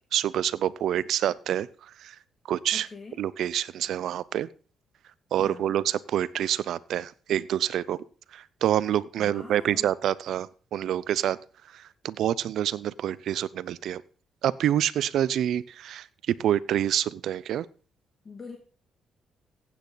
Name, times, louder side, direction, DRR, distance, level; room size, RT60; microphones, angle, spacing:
voice 1, 0.1-1.7 2.0-2.2 2.5-2.9 3.2-4.5 5.3-8.0 8.3-11.4 11.7-14.0 14.4-17.7, right 11 dB, 75° right, 20 dB, 0.6 m, -27 dB
voice 2, 2.7-3.2 5.4-5.7 9.2-9.9 18.2-18.6, left 4 dB, 35° left, 3 dB, 2.1 m, -43 dB
15.5 x 8.7 x 4.0 m, 0.38 s
cardioid pair, 90°, 0 cm